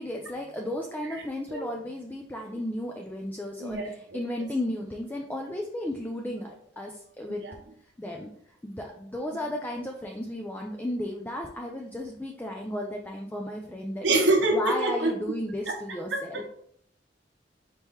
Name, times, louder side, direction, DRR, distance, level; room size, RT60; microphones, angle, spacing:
voice 1, 0.0-7.5 8.0-14.1 14.5-16.4, left 1 dB, 10° left, 0 dB, 0.4 m, -34 dB
voice 2, 3.6-3.9 7.4-7.5 14.0-15.1 15.7-15.8 16.1-16.2, right 2 dB, 85° right, 2 dB, 0.9 m, -25 dB
4.6 x 2.8 x 3.5 m, 0.68 s
head